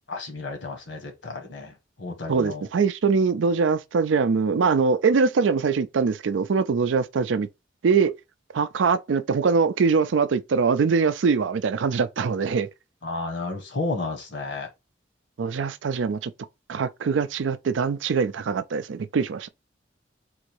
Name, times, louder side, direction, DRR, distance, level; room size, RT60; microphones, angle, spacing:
voice 1, 0.1-2.7 13.0-14.7, left 3 dB, 70° left, 1.5 m, -32 dB
voice 2, 2.3-7.5 7.8-8.1 8.5-12.7 15.4-16.3 16.7-19.5, right 5 dB, 85° right, 0.4 m, -23 dB
3.8 x 2.6 x 4.6 m
head